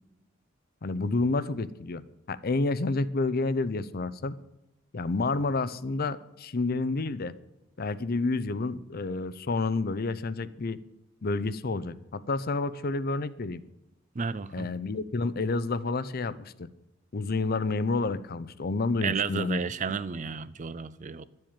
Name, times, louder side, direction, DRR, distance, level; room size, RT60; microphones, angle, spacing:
voice 1, 0.8-2.0 2.3-4.3 4.9-7.3 7.8-10.8 11.2-13.6 14.5-16.7 17.1-19.6, left 3 dB, 50° left, 0.6 m, -29 dB
voice 2, 14.2-14.7 19.0-21.2, right 5 dB, 40° right, 0.5 m, -32 dB
11.5 x 7.6 x 8.8 m
head